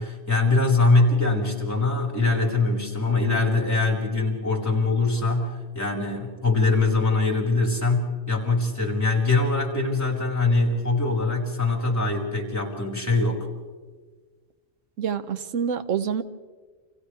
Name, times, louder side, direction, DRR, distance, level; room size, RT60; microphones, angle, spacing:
voice 1, 0.0-13.5, left 3 dB, 15° left, -2 dB, 4.6 m, -23 dB
voice 2, 15.0-16.2, right 7 dB, 90° right, 11 dB, 1.2 m, -27 dB
29.5 x 27.5 x 3.3 m, 1.4 s
omnidirectional pair, 1.3 m